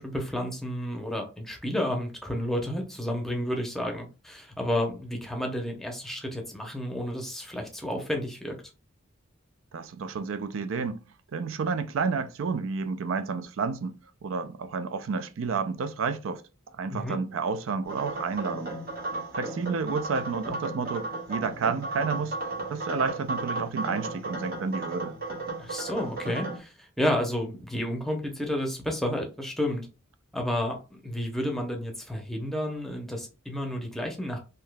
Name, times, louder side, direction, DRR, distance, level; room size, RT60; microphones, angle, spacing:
voice 1, 0.0-8.6 16.9-17.2 25.6-29.9 30.3-34.4, left 1 dB, ahead, 0.7 m, -31 dB
voice 2, 9.7-11.0 11.3-14.0 14.2-16.4 16.7-18.7 19.3-22.4 22.7-25.2, right 5 dB, 80° right, 0.4 m, -30 dB
sound 1, 17.8-26.6, right 2 dB, 45° right, 1.2 m, -35 dB
3.6 x 2.7 x 2.2 m
head